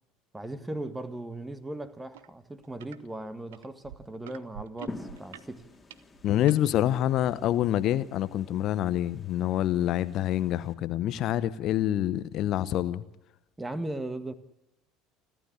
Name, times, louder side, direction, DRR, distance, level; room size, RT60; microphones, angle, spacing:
voice 1, 0.3-5.6 13.6-14.3, right 1 dB, 10° right, 1.8 m, -38 dB
sound 1, 2.1-2.3 2.6-3.0 3.5-6.6 7.3-7.4, right 10 dB, 70° right, 0.9 m, -46 dB
sound 2, 4.9-10.7, left 3 dB, 15° left, 2.8 m, -48 dB
voice 2, 6.2-13.0, left 12 dB, 45° left, 0.8 m, -26 dB
29.0 x 12.5 x 9.9 m
figure-of-eight pair, 65°, 0 cm